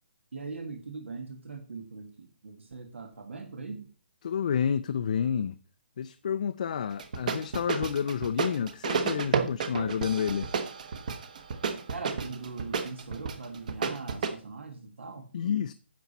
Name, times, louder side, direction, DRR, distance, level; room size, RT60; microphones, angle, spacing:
voice 1, 0.3-3.9 5.3-5.4 11.9-15.3, right 4 dB, 85° right, 1.6 m, -41 dB
voice 2, 4.2-5.6 6.0-10.5 15.3-15.7, left 7 dB, 40° left, 0.4 m, -29 dB
sound 1, 7.0-14.3, right 5 dB, 40° right, 1.1 m, -31 dB
10.5 x 6.9 x 4.1 m
hypercardioid pair, 170°, 6 cm